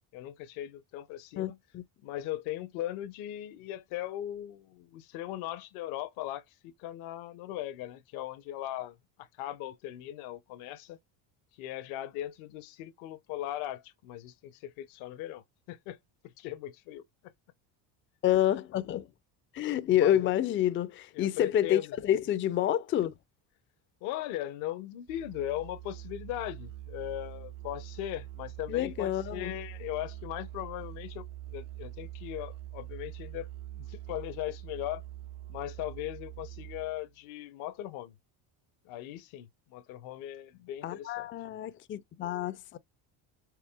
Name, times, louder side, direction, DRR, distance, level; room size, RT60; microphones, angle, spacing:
voice 1, 0.1-1.6 2.0-11.0 11.5-16.0 16.2-17.0 19.8-20.3 21.1-21.9 24.0-35.0 35.5-38.1 38.8-41.3, left 13 dB, 75° left, 0.7 m, -39 dB
voice 2, 1.4-1.8 18.2-19.1 19.5-23.1 28.7-29.5 40.8-42.8, left 11 dB, 30° left, 0.3 m, -28 dB
Musical instrument, 25.1-37.1, right 14 dB, 65° right, 0.6 m, -44 dB
4.7 x 3.1 x 2.2 m
supercardioid pair, 75°, 49 cm